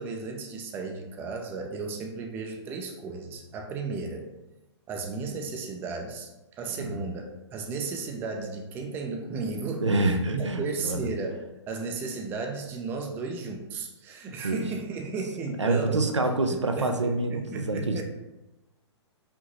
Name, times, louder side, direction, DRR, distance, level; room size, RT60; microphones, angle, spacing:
voice 1, 0.0-4.3 4.9-7.3 7.5-9.9 10.3-16.1 16.5-18.0, right 4 dB, 15° right, 2 dB, 0.4 m, -34 dB
voice 2, 9.8-11.0 14.3-14.6 15.6-18.0, right 2 dB, 80° right, 5 dB, 0.5 m, -27 dB
5.2 x 2.8 x 3.0 m, 1.0 s
figure-of-eight pair, 115°, 15 cm